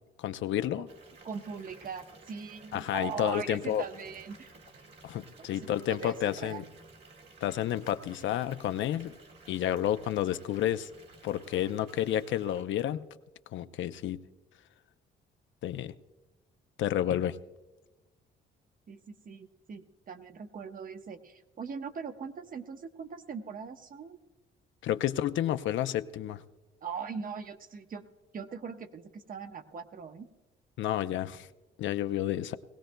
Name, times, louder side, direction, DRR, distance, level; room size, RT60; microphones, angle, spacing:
voice 1, 0.2-0.9 2.7-3.8 5.0-6.6 7.4-9.2 9.5-10.9 11.2-13.0 13.5-14.2 15.6-15.9 16.8-17.4 24.8-26.4 30.8-31.5 31.8-32.6, left 11 dB, 75° left, 11 dB, 0.5 m, -30 dB
Water tap faucet / Bathtub (filling or washing) / Fill (with liquid), 0.9-12.6, right 3 dB, 60° right, 2.2 m, -54 dB
voice 2, 1.2-4.6 5.4-6.7 18.9-24.2 26.8-28.0 28.3-30.3, right 6 dB, 45° right, 8 dB, 0.9 m, -41 dB
19.5 x 16.5 x 2.2 m, 1.2 s
cardioid pair, 90°, 20 cm